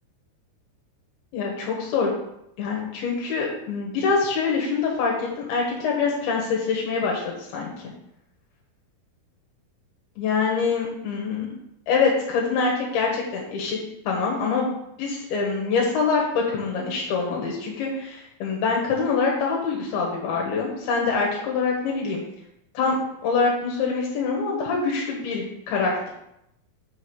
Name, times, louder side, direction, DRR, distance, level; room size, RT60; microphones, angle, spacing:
voice 1, 1.3-2.1 2.6-7.9 10.2-11.5 11.9-13.8 14.1-14.7 15.0-22.2 22.7-26.1, left 4 dB, 80° left, -1 dB, 3.1 m, -25 dB
6.8 x 6.0 x 4.6 m, 0.80 s
omnidirectional pair, 4.4 m